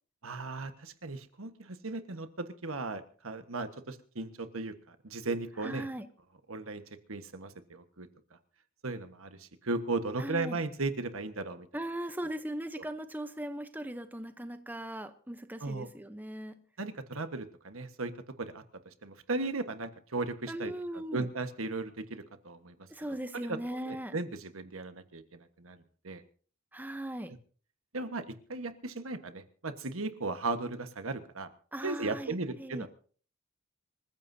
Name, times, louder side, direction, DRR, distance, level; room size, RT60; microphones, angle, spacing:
voice 1, 0.2-5.9 6.5-6.8 7.1-8.1 8.8-11.7 15.6-15.9 16.8-18.1 18.4-18.6 19.0-20.7 21.1-22.7 23.5-23.6 23.8-25.8 26.0-26.2 27.9-31.5 31.8-32.9, right 3 dB, 90° right, 9 dB, 1.4 m, -36 dB
voice 2, 5.6-6.1 10.2-10.6 11.7-16.6 20.5-21.3 22.9-24.1 26.7-27.3 31.7-32.9, right 1 dB, 10° right, 9 dB, 0.8 m, -39 dB
26.0 x 15.0 x 2.8 m, 0.43 s
head